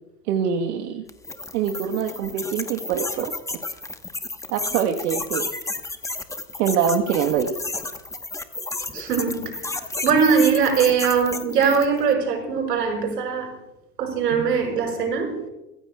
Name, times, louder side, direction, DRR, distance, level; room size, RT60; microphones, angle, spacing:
voice 1, 0.3-1.0 1.5-3.3 4.5-5.5 6.6-7.5, right 7 dB, 65° right, 3 dB, 1.4 m, -24 dB
sound 1, 1.1-12.0, left 2 dB, 5° left, 1.1 m, -32 dB
voice 2, 8.9-9.6 10.0-13.5 14.0-15.3, right 6 dB, 85° right, 2 dB, 5.5 m, -21 dB
24.0 x 15.5 x 2.3 m, 0.96 s
hypercardioid pair, 95°, 47 cm